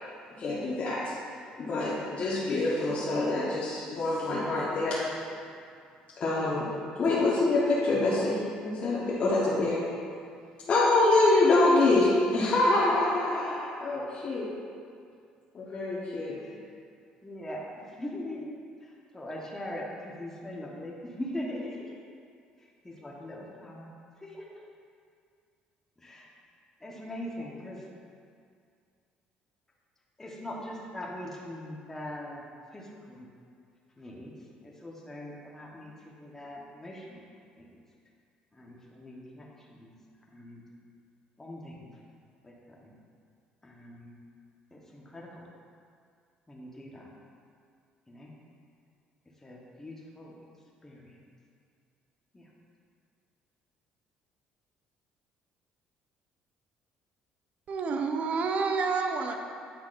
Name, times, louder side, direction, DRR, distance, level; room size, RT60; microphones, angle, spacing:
voice 1, 0.4-1.1 1.6-5.3 6.2-9.8 10.7-14.5 15.5-16.4, left 2 dB, 45° left, -7 dB, 1.1 m, -26 dB
voice 2, 17.2-18.5 18.8-21.9 22.6-23.9 24.2-24.5 26.0-26.3 26.8-27.8 30.2-32.4 32.7-33.3 34.0-34.3 34.6-37.2 37.5-37.7 38.5-39.9 40.3-40.6 41.4-41.9 42.4-42.9 43.6-44.2 44.7-45.4 46.5-47.1 48.1-48.3 49.4-50.3 50.8-51.2 52.3-52.5, left 1 dB, 15° left, -3 dB, 1.1 m, -41 dB
voice 3, 57.7-59.3, right 4 dB, 50° right, 4 dB, 0.7 m, -29 dB
8.6 x 5.7 x 2.5 m, 2.3 s
cardioid pair, 95°, 3 cm